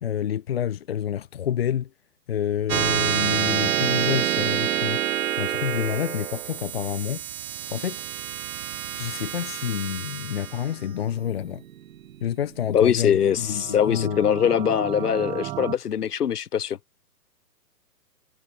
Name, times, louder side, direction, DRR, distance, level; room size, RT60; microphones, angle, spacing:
voice 1, 0.0-1.9 2.3-5.0 5.4-7.2 7.7-8.0 8.9-11.6 12.2-14.3, left 10 dB, 40° left, 0.7 m, -28 dB
sound 1, 2.7-13.5, right 11 dB, 55° right, 0.5 m, -28 dB
voice 2, 12.7-16.8, left 8 dB, 65° left, 2.1 m, -22 dB
sound 2, 13.2-15.7, right 15 dB, 15° right, 1.6 m, -35 dB
hypercardioid pair, 155°, 50 cm